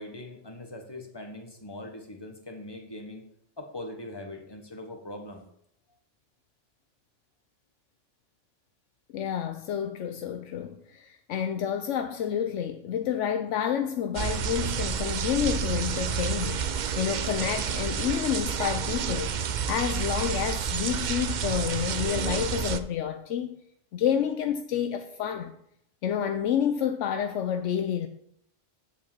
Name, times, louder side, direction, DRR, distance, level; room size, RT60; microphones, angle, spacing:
voice 1, 0.0-3.3 3.6-5.5, left 1 dB, 20° left, 1.3 m, -41 dB
voice 2, 9.1-19.3 19.6-23.6 23.9-25.5 26.0-28.1, left 9 dB, 80° left, 1.0 m, -29 dB
sound 1, 14.1-22.8, right 7 dB, 55° right, 0.5 m, -30 dB
7.5 x 5.8 x 7.3 m
omnidirectional pair, 1.3 m